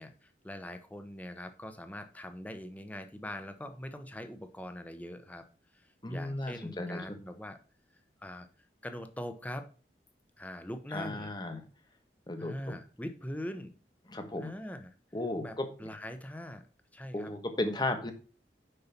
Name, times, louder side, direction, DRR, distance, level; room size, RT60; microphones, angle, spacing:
voice 1, 0.0-5.5 5.7-7.6 8.2-8.5 8.8-9.7 10.4-11.3 12.4-13.7 14.4-14.9 15.4-16.7 16.9-17.3, left 1 dB, 10° left, 9 dB, 0.8 m, -42 dB
voice 2, 6.0-7.0 10.9-11.6 12.3-12.7 14.1-14.5 15.1-15.9 17.1-18.1, left 2 dB, 25° left, 7 dB, 1.2 m, -35 dB
6.8 x 5.6 x 5.8 m, 0.37 s
head